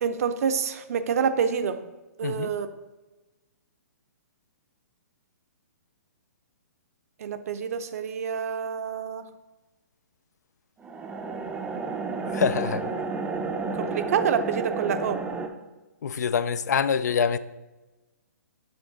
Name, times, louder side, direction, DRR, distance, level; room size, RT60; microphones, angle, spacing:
voice 1, 0.0-1.8 2.2-2.7 7.2-9.2 13.8-15.2, right 7 dB, 60° right, 10 dB, 0.5 m, -27 dB
sound 1, 10.8-15.5, right 3 dB, 10° right, 0.4 m, -31 dB
voice 2, 12.2-12.8 16.0-17.4, left 7 dB, 75° left, 15 dB, 0.4 m, -25 dB
6.9 x 3.8 x 3.9 m, 1.1 s
hypercardioid pair, 135°, 9 cm